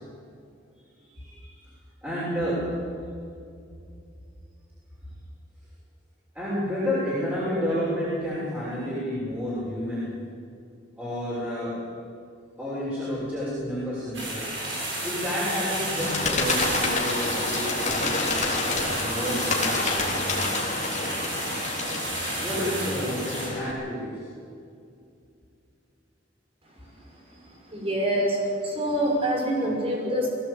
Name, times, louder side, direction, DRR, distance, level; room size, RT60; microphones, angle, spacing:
voice 1, 1.0-1.7 2.0-2.7 6.3-10.1 11.0-11.8 12.6-14.5 15.0-18.4 18.9-20.0 22.4-24.3 27.2-27.5 27.7-27.8 29.5-29.6, equal, 10° right, -10 dB, 6.5 m, -30 dB
sound 1, 14.1-23.5, right 1 dB, 75° right, 7.6 m, -31 dB
Bird, 16.0-23.7, left 3 dB, 40° left, 3.5 m, -28 dB
voice 2, 27.7-28.4 28.6-30.3, equal, 30° right, 0 dB, 5.7 m, -25 dB
21.5 x 17.5 x 8.7 m, 2.4 s
head